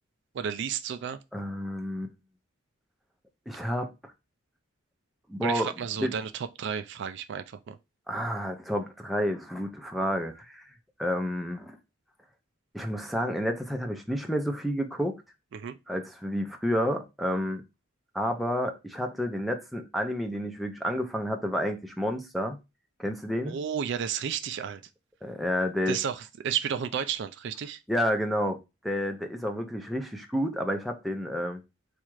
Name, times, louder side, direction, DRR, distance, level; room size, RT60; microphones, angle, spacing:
voice 1, 0.3-1.2 5.4-7.8 15.5-15.8 23.5-24.8 25.9-27.8, right 8 dB, 60° right, 0.4 m, -32 dB
voice 2, 1.3-2.1 3.5-3.9 5.3-5.7 6.0-6.2 8.1-10.6 11.0-11.8 12.7-15.2 15.9-17.6 18.1-22.6 23.0-23.6 25.2-26.0 27.9-28.6 28.8-31.6, equal, ahead, 0.6 m, -30 dB
4.2 x 2.4 x 4.6 m
head